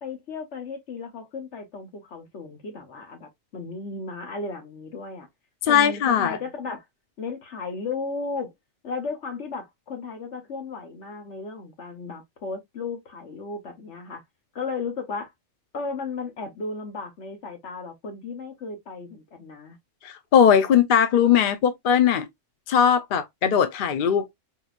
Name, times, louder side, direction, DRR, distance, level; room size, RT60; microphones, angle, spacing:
voice 1, 0.0-5.3 5.7-6.8 7.2-8.5 8.8-14.2 14.5-15.3 15.7-19.8, left 4 dB, 75° left, 1.5 m, -35 dB
voice 2, 5.6-6.4 20.0-22.3 22.7-24.3, left 8 dB, 55° left, 0.7 m, -19 dB
3.9 x 2.8 x 2.4 m
omnidirectional pair, 1.2 m